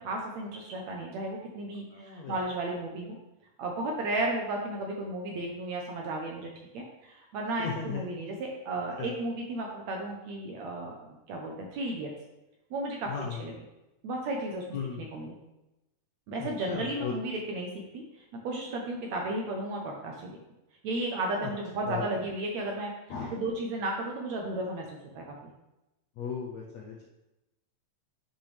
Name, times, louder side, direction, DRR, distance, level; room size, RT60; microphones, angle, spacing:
voice 1, 0.0-3.2 3.6-12.1 12.7-13.5 14.0-14.6 15.0-15.4 16.3-20.4 20.8-22.9 23.3-25.5, right 2 dB, 70° right, 0 dB, 1.8 m, -34 dB
voice 2, 1.9-2.3 7.6-8.0 9.0-9.1 13.1-13.4 14.7-15.0 16.4-17.1 21.9-22.0 23.1-23.4 26.2-27.0, left 6 dB, 75° left, -1 dB, 1.6 m, -36 dB
10.5 x 5.9 x 3.4 m, 0.96 s
omnidirectional pair, 4.0 m